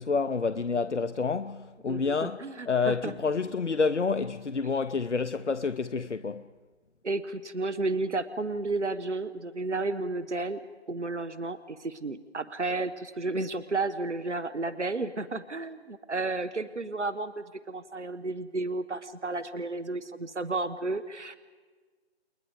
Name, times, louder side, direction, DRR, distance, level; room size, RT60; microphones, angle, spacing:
voice 1, 0.0-2.4 2.7-6.5, left 4 dB, 85° left, 0.7 m, -28 dB
voice 2, 1.9-3.1 6.0-6.1 7.0-10.6 10.9-21.4, right 3 dB, 80° right, 1.1 m, -32 dB
29.5 x 20.5 x 5.1 m
figure-of-eight pair, 155°, 34 cm